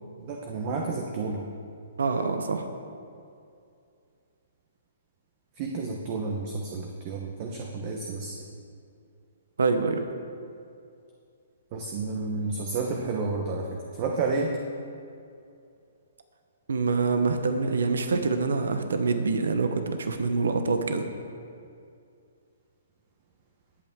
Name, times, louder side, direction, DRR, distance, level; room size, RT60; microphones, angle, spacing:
voice 1, 0.2-1.4 5.6-8.3 11.7-13.7 14.0-14.5, right 4 dB, 35° right, 1 dB, 1.2 m, -30 dB
voice 2, 2.0-2.7 9.6-10.0 16.7-21.0, right 4 dB, 85° right, 7 dB, 1.1 m, -25 dB
19.5 x 8.6 x 3.7 m, 2.5 s
hypercardioid pair, 155°, 0 cm